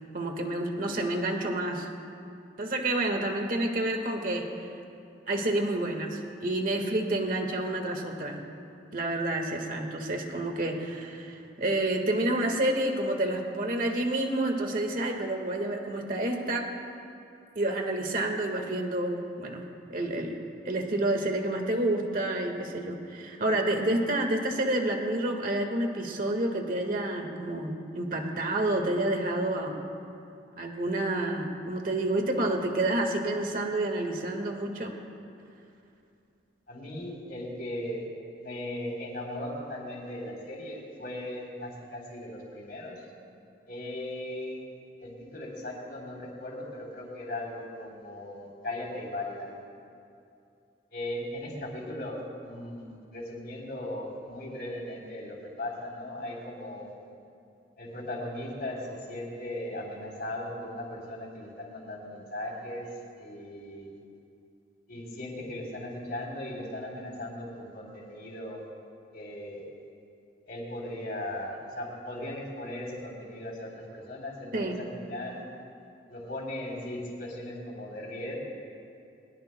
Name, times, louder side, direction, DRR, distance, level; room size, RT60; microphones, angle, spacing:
voice 1, 0.1-1.9 2.6-4.5 5.3-8.4 8.9-16.7 17.6-19.6 19.9-29.8 30.6-34.9 74.5-74.8, right 1 dB, 50° right, 3 dB, 1.6 m, -29 dB
voice 2, 36.7-38.0 38.4-43.0 43.7-44.6 45.0-49.5 50.9-56.9 57.8-62.9 63.2-64.0 64.9-68.6 69.1-69.6 70.5-75.4 76.1-78.4, left 1 dB, 55° left, -2 dB, 3.5 m, -38 dB
22.0 x 21.0 x 2.2 m, 2.6 s
head